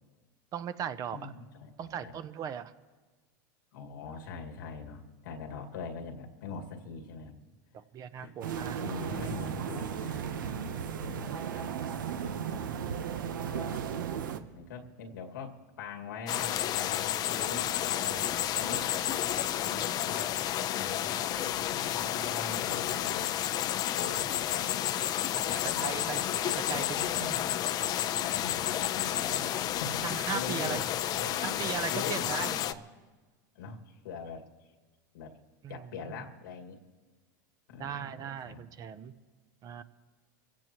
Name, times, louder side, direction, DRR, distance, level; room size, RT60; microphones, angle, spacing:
voice 1, 0.5-1.3 1.8-2.7 7.9-8.8 25.6-27.5 29.3-29.6 30.0-30.8 31.4-32.6 35.6-36.2 37.8-39.1 39.6-39.8, right 8 dB, 35° right, 12 dB, 0.8 m, -38 dB
voice 2, 1.1-2.2 3.7-7.4 8.1-8.3 8.6-11.7 12.1-12.8 13.5-13.9 14.5-18.2 18.6-19.0 19.6-23.3 23.9-24.7 25.4-26.0 26.7-27.4 28.2-29.4 29.6-31.6 31.9-32.8 33.6-34.5 35.1-35.3 35.7-36.8 37.7-38.6, left 5 dB, 90° left, 2 dB, 2.1 m, -43 dB
sound 1, 8.4-14.4, right 8 dB, 90° right, 0.9 m, -35 dB
sound 2, 16.3-32.7, left 12 dB, 40° left, 0.6 m, -31 dB
26.5 x 16.0 x 3.0 m, 1.3 s
supercardioid pair, 120°, 10 cm